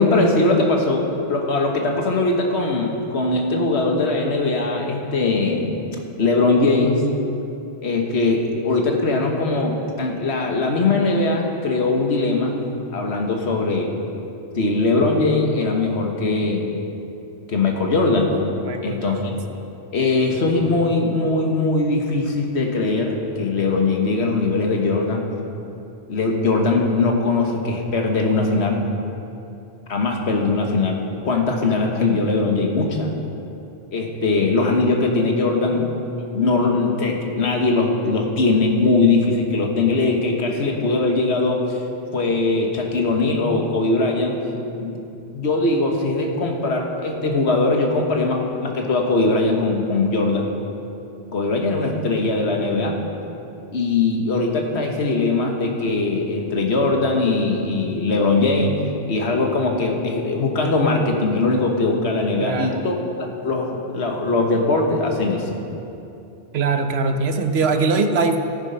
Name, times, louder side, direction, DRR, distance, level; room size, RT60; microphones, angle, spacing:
voice 1, 0.0-5.8 6.2-7.0 7.8-12.6 12.9-13.9 14.6-16.7 17.5-18.3 18.8-19.2 19.9-25.2 26.1-28.8 29.9-33.1 33.9-35.9 36.3-41.8 42.1-44.4 44.8-45.0 45.3-50.5 51.3-53.0 53.7-58.7 59.1-65.5, left 3 dB, 75° left, 1 dB, 1.6 m, -20 dB
voice 2, 18.6-19.4 62.4-62.8 66.5-68.4, right 4 dB, 70° right, 7 dB, 1.1 m, -22 dB
14.0 x 9.1 x 5.6 m, 2.8 s
omnidirectional pair, 1.1 m